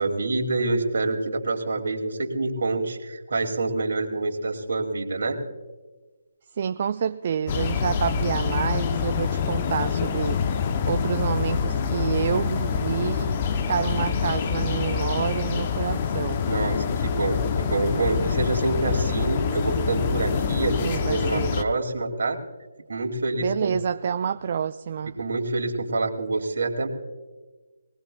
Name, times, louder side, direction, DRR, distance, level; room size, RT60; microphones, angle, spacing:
voice 1, 0.0-5.4 16.4-22.4 22.9-23.8 25.2-26.9, right 2 dB, 65° right, 2 dB, 2.3 m, -26 dB
voice 2, 6.6-10.6 10.9-16.5 20.8-21.6 23.4-25.1, right 7 dB, 45° right, 9 dB, 0.4 m, -28 dB
sound 1, 7.5-21.6, left 6 dB, 35° left, 0.7 m, -26 dB
21.5 x 18.5 x 2.3 m, 1.2 s
figure-of-eight pair, 155°, 0 cm